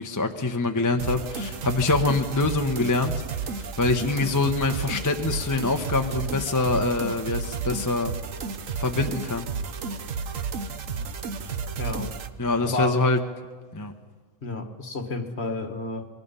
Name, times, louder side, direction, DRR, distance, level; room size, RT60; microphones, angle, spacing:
voice 1, 0.0-3.1 3.5-8.1 8.8-9.5 12.4-13.2 13.7-13.9, left 3 dB, 15° left, 0.9 m, -25 dB
sound 1, 1.0-12.3, right 5 dB, 70° right, 1.4 m, -32 dB
voice 2, 11.8-12.1 12.7-12.9 14.4-16.1, left 3 dB, 50° left, 1.9 m, -30 dB
27.0 x 22.5 x 5.6 m
omnidirectional pair, 1.4 m